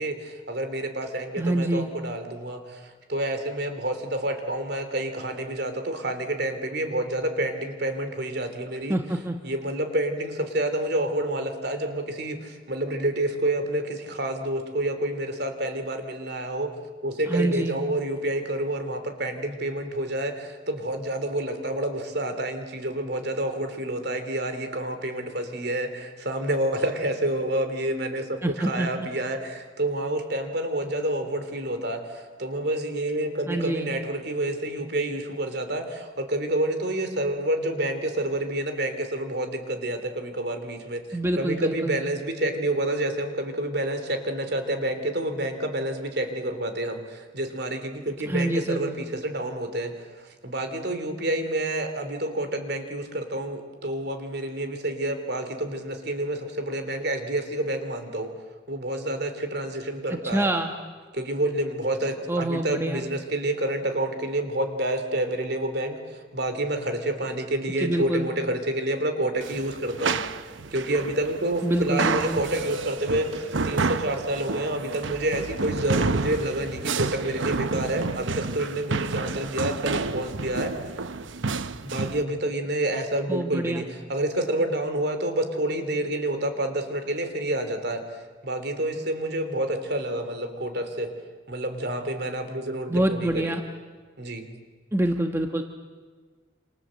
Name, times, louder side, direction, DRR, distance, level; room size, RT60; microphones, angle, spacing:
voice 1, 0.0-9.0 9.4-16.7 17.0-41.0 41.3-58.3 58.7-60.5 61.1-70.2 70.7-80.9 81.8-91.1 91.5-93.5 94.2-94.5, right 1 dB, 55° right, 7 dB, 3.3 m, -28 dB
voice 2, 1.4-1.9 8.9-9.4 17.3-17.8 28.4-29.1 33.5-33.9 41.1-42.0 48.3-48.9 60.1-60.7 62.3-63.0 67.8-68.3 71.6-72.4 83.3-83.8 92.9-93.6 94.9-95.6, right 1 dB, 15° right, 4 dB, 1.2 m, -26 dB
sound 1, 69.4-82.2, right 4 dB, 75° right, 0.9 m, -30 dB
28.5 x 27.0 x 7.7 m, 1.5 s
head